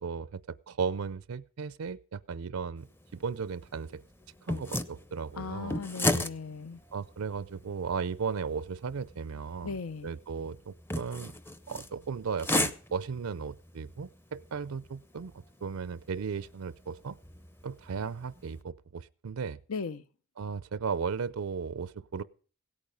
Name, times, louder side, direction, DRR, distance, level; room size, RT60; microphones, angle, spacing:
voice 1, 0.0-2.9 3.1-4.0 4.4-5.8 6.9-9.8 10.0-11.3 11.7-15.3 15.6-17.2 17.6-19.6 20.4-22.2, right 5 dB, 80° right, 0.5 m, -36 dB
sound 1, 2.8-18.6, left 1 dB, 10° left, 0.6 m, -37 dB
voice 2, 5.4-6.8 9.6-10.2 19.7-20.0, left 4 dB, 75° left, 0.7 m, -37 dB
17.0 x 8.7 x 5.2 m
head